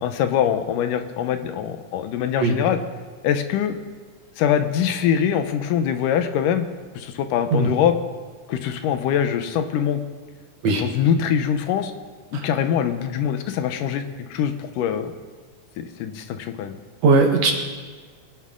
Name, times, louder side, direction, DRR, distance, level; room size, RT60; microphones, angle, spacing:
voice 1, 0.0-2.8 3.2-3.7 4.4-6.7 7.0-8.0 8.5-10.0 10.7-11.9 12.3-15.1 15.8-16.8, left 9 dB, 85° left, 8 dB, 2.4 m, -23 dB
voice 2, 17.0-17.5, right 3 dB, 60° right, 2 dB, 2.3 m, -17 dB
23.5 x 9.7 x 3.7 m, 1.5 s
omnidirectional pair, 3.7 m